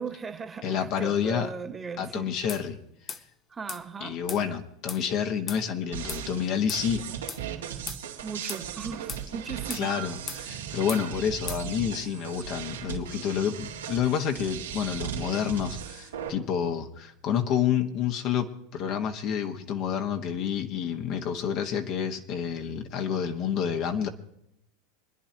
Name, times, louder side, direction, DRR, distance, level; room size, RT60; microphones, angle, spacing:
voice 1, 0.0-2.3 3.5-4.2 8.2-9.9, right 5 dB, 20° right, 1.4 m, -37 dB
voice 2, 0.6-1.5 2.0-2.8 4.0-7.0 9.7-24.1, left 8 dB, 50° left, 1.5 m, -29 dB
sound 1, 2.5-2.6 3.1-3.2 3.7-3.8 4.3-4.4 4.9-5.0 5.5-5.6 6.1-6.2 6.7-6.8 7.3-7.4 7.9-8.0 8.5-8.6 9.1-9.2 9.7-9.9 10.3-10.4 10.9-11.0 11.5-11.6, left 5 dB, 30° left, 0.9 m, -37 dB
sound 2, 5.9-16.3, right 9 dB, 85° right, 2.1 m, -37 dB
26.0 x 10.0 x 2.9 m
hypercardioid pair, 100°, 0 cm